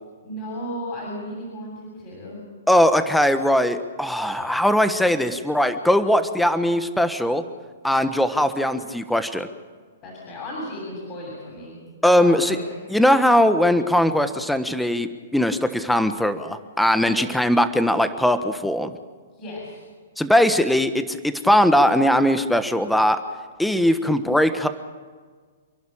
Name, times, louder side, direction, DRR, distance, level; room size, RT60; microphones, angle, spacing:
voice 1, 0.2-2.4 10.0-12.7 17.0-17.2 19.3-19.8, equal, 35° left, -2 dB, 7.4 m, -35 dB
voice 2, 2.7-7.4 7.8-9.5 12.0-12.6 12.9-18.9 20.2-23.2 23.6-24.7, equal, ahead, 10 dB, 1.3 m, -20 dB
28.5 x 11.5 x 8.8 m, 1.5 s
hypercardioid pair, 120°, 0 cm